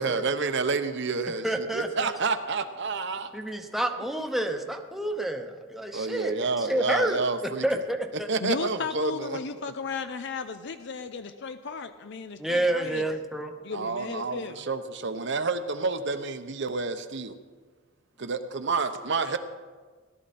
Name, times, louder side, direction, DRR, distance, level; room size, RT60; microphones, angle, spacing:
voice 1, 0.0-3.3 4.0-4.1 5.9-7.6 8.3-9.4 13.7-17.4 18.2-19.4, right 4 dB, 60° right, 9 dB, 0.9 m, -29 dB
voice 2, 1.4-2.1 3.3-8.3 12.4-13.5 14.3-14.4, right 1 dB, ahead, 3 dB, 0.9 m, -29 dB
voice 3, 8.4-13.1 13.6-14.6, left 5 dB, 60° left, 10 dB, 0.6 m, -35 dB
17.5 x 12.5 x 4.3 m, 1.4 s
head